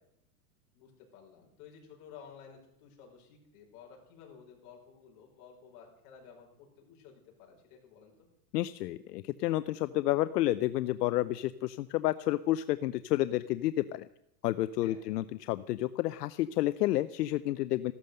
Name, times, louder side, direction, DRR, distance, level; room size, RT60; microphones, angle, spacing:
voice 1, 0.7-8.1 14.8-15.0, left 7 dB, 45° left, 0 dB, 5.6 m, -54 dB
voice 2, 8.5-14.1 14.4-17.9, left 15 dB, 80° left, 14 dB, 0.7 m, -30 dB
15.0 x 12.5 x 6.6 m, 0.79 s
supercardioid pair, 155°, 48 cm